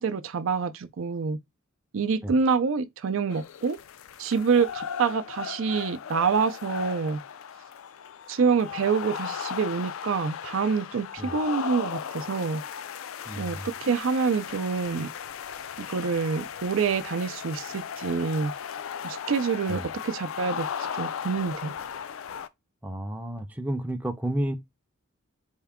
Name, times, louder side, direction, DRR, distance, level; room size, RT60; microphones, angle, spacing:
voice 1, 0.0-1.4 1.9-3.8 4.2-7.2 8.3-12.6 13.4-15.1 15.8-18.5 19.0-20.7 20.9-21.7, right 5 dB, 70° right, 0.4 m, -26 dB
sound 1, 3.3-22.5, left 8 dB, 75° left, 0.4 m, -37 dB
voice 2, 13.3-13.7 19.7-19.9 22.8-24.6, right 1 dB, 10° right, 0.5 m, -31 dB
4.5 x 2.2 x 3.5 m
head